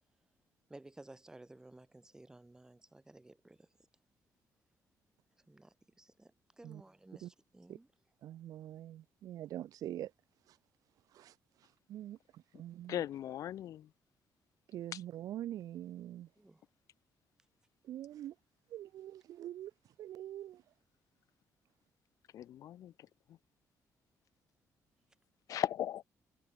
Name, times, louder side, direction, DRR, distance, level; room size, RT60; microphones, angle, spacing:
voice 1, 0.7-3.7 5.5-7.9 16.4-16.6, right 2 dB, 10° right, 2.8 m, -56 dB
voice 2, 8.2-10.1 10.5-10.6 11.1-11.3 11.9-13.0 14.7-16.3 17.8-18.3 18.7-19.7 20.0-20.6, right 12 dB, 75° right, 1.2 m, -44 dB
voice 3, 12.9-13.9 14.9-15.0 22.3-22.9 23.3-23.4 25.5-26.0, left 11 dB, 70° left, 1.0 m, -38 dB
cardioid pair, 150°, 6 cm